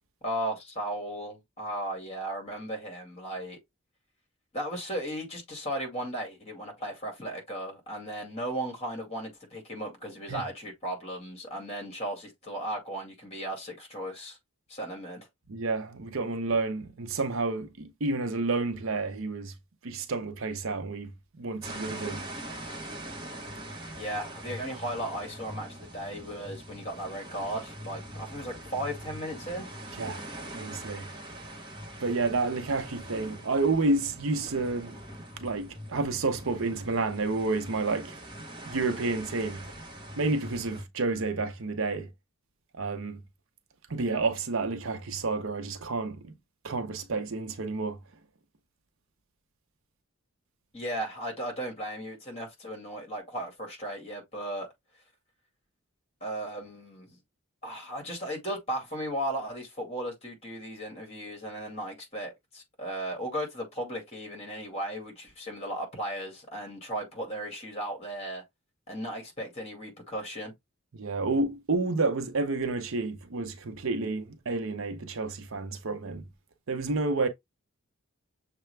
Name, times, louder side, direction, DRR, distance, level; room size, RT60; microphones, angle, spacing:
voice 1, 0.2-3.6 4.5-14.4 14.7-15.3 24.0-29.7 50.7-54.7 56.2-57.2 57.6-68.4 68.9-70.5, right 1 dB, 30° left, 2.1 m, -36 dB
voice 2, 15.5-19.5 19.8-22.2 30.0-30.2 30.5-31.1 32.0-35.0 35.4-38.2 38.7-39.7 40.2-42.1 42.7-43.2 43.9-46.4 46.6-48.0 70.9-76.3 76.7-77.3, right 3 dB, 70° right, 0.7 m, -30 dB
sound 1, 21.6-40.8, right 1 dB, 20° right, 0.9 m, -43 dB
6.6 x 2.2 x 3.3 m
head